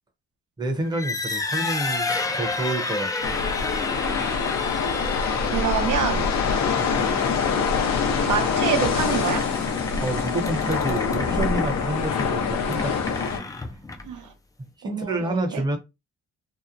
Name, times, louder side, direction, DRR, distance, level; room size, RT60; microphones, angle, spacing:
voice 1, 0.6-3.3 6.8-7.2 10.0-13.2 14.8-15.8, right 2 dB, 15° right, 0.7 m, -29 dB
sound 1, 0.8-14.3, left 3 dB, 10° left, 0.3 m, -31 dB
sound 2, 3.2-13.4, left 6 dB, 65° left, 0.6 m, -25 dB
voice 2, 5.5-6.3 7.1-7.6 8.2-9.5 14.0-14.3 14.8-15.6, right 6 dB, 80° right, 0.8 m, -27 dB
2.8 x 2.1 x 2.4 m
cardioid pair, 90°, 30 cm